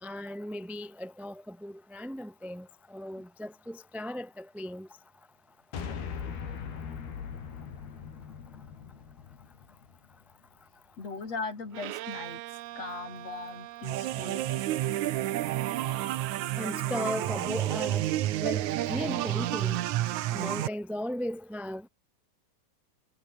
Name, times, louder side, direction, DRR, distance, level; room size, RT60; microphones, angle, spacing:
voice 1, 0.0-4.9 16.6-18.1 18.4-19.8 20.3-21.9, left 1 dB, ahead, 1.2 m, -37 dB
sound 1, 5.7-10.2, left 7 dB, 90° left, 6.0 m, -40 dB
voice 2, 11.0-14.5, left 4 dB, 45° left, 6.2 m, -39 dB
Bowed string instrument, 11.7-16.2, right 17 dB, 90° right, 2.8 m, -43 dB
sound 2, 13.8-20.7, right 14 dB, 70° right, 2.0 m, -30 dB
omnidirectional pair, 4.3 m